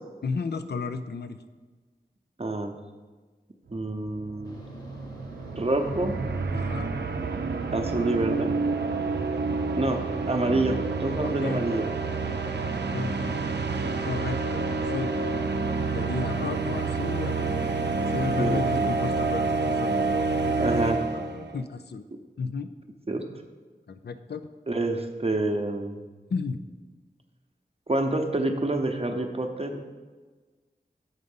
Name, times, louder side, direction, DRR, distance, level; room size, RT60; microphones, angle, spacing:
voice 1, 0.2-1.4 6.5-6.9 11.2-11.7 12.2-12.4 12.9-13.4 14.0-14.6 14.9-15.1 15.9-17.7 18.1-20.8 21.1-22.0 22.4-22.7 23.9-24.5 26.3-26.6, left 4 dB, 75° left, 9 dB, 0.5 m, -33 dB
voice 2, 2.4-2.7 3.7-4.6 5.6-6.2 7.7-8.6 9.8-10.0 10.3-11.9 18.4-18.9 20.6-21.0 23.1-23.2 24.7-26.0 27.9-29.8, right 2 dB, 35° right, 5 dB, 0.8 m, -27 dB
sound 1, 3.8-3.9 4.1-21.5, right 4 dB, 90° right, 0.5 m, -28 dB
sound 2, 4.4-17.8, equal, 25° left, 1.1 m, -45 dB
8.1 x 3.8 x 5.4 m, 1.3 s
wide cardioid pair, 45°, 17 cm